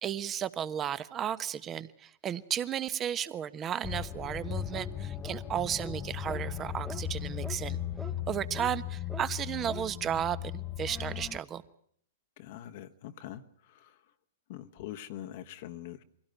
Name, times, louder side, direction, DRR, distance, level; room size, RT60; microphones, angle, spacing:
voice 1, 0.0-7.8 8.3-11.6, right 9 dB, 25° right, 16 dB, 1.2 m, -34 dB
sound 1, 3.8-11.4, left 10 dB, 25° left, 0.9 m, -37 dB
sound 2, 4.7-4.9 5.2-5.4 5.8-6.0 6.3-6.4 6.8-7.0 7.4-7.6 8.0-8.1 8.5-8.7 9.1-9.3 9.7-9.9, right 2 dB, 5° right, 1.3 m, -44 dB
voice 2, 12.4-14.0 14.5-16.0, left 12 dB, 55° left, 7 dB, 1.2 m, -44 dB
23.5 x 17.0 x 9.2 m, 0.67 s
hypercardioid pair, 110°, 0 cm